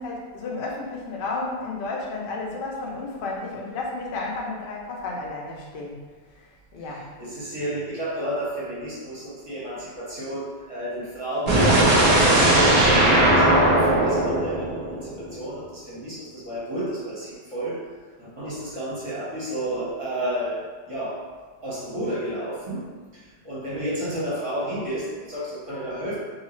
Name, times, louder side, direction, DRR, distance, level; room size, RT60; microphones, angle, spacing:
voice 1, 0.0-6.0 6.3-7.1, left 3 dB, 55° left, -2 dB, 0.7 m, -32 dB
voice 2, 7.2-17.8 18.2-21.2 21.6-26.2, right 1 dB, 30° right, -9 dB, 0.8 m, -31 dB
sound 1, 11.5-15.4, right 1 dB, 45° right, 0.5 m, -18 dB
2.7 x 2.4 x 3.0 m, 1.5 s
omnidirectional pair, 1.3 m